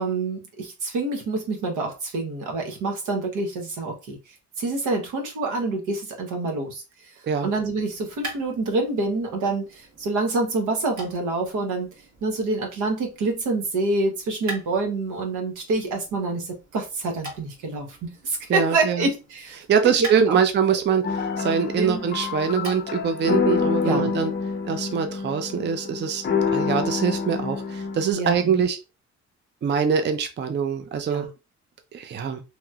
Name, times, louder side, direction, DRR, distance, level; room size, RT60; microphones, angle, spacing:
voice 1, 0.0-4.2 4.6-6.8 7.4-11.9 12.2-19.6 19.8-20.4 21.8-22.0 23.8-24.1 28.1-28.6 31.1-31.3, right 3 dB, 85° right, 1.0 m, -27 dB
sound 1, 7.5-23.2, right 2 dB, 65° right, 1.5 m, -43 dB
voice 2, 18.5-19.1 19.6-24.3 24.6-26.2 26.5-28.8 29.6-31.3 31.9-32.4, right 6 dB, 35° right, 0.5 m, -23 dB
sound 2, 21.0-28.1, left 5 dB, 35° left, 0.5 m, -27 dB
2.9 x 2.9 x 2.3 m
cardioid pair, 90°, 30 cm